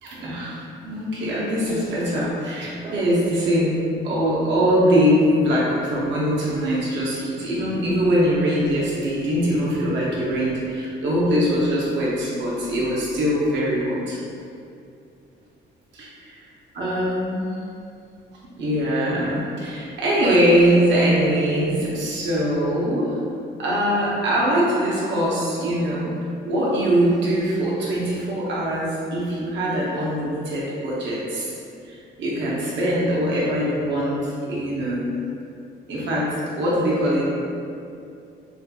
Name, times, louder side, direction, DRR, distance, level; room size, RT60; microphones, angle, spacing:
voice 1, 0.0-0.6 0.8-3.8 4.0-14.2 15.9-16.1 16.8-17.4 18.6-23.2 23.6-26.1 26.5-31.6 31.8-35.1 35.9-36.3 36.6-37.3, equal, 65° right, -6 dB, 0.6 m, -22 dB
2.5 x 2.4 x 2.3 m, 2.5 s
cardioid pair, 90°, 20 cm